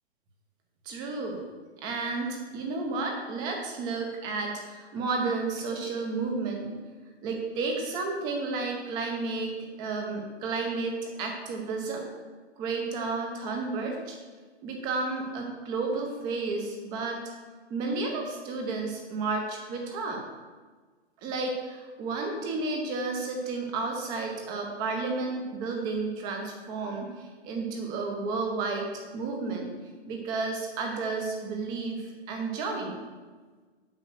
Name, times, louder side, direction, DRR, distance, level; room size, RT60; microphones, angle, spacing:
voice 1, 0.8-1.4 1.8-6.7 7.2-12.1 12.6-14.2 14.6-17.2 17.7-20.2 21.2-29.7 30.1-33.0, right 3 dB, 15° right, 2 dB, 0.8 m, -32 dB
7.6 x 5.5 x 6.2 m, 1.4 s
hypercardioid pair, 165°, 33 cm